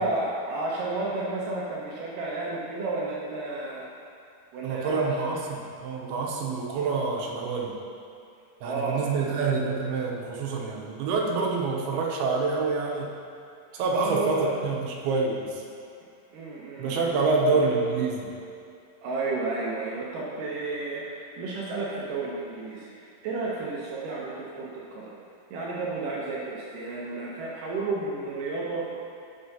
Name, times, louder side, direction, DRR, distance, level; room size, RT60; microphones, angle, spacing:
voice 1, 0.0-3.9 4.5-5.3 8.6-9.3 13.7-14.5 16.3-17.8 19.0-25.1 25.5-28.9, right 3 dB, 75° right, -5 dB, 2.1 m, -32 dB
voice 2, 4.6-7.7 8.6-13.2 13.7-15.6 16.8-18.3, right 4 dB, 90° right, -1 dB, 2.7 m, -27 dB
9.2 x 7.8 x 2.8 m, 2.5 s
omnidirectional pair, 4.4 m